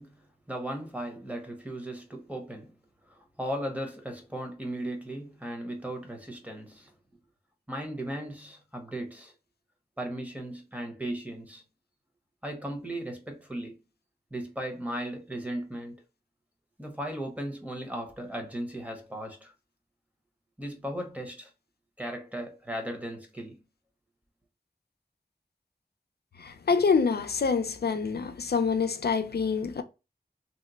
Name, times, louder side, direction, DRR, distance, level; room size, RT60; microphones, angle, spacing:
voice 1, 0.0-2.8 3.1-6.9 7.7-9.3 10.0-11.6 12.4-13.8 14.3-16.0 16.8-19.5 20.6-21.5 22.0-23.6, right 1 dB, 10° right, 0.9 m, -37 dB
voice 2, 26.4-29.8, left 5 dB, 75° left, 0.4 m, -26 dB
2.9 x 2.1 x 3.9 m
wide cardioid pair, 50°, 17 cm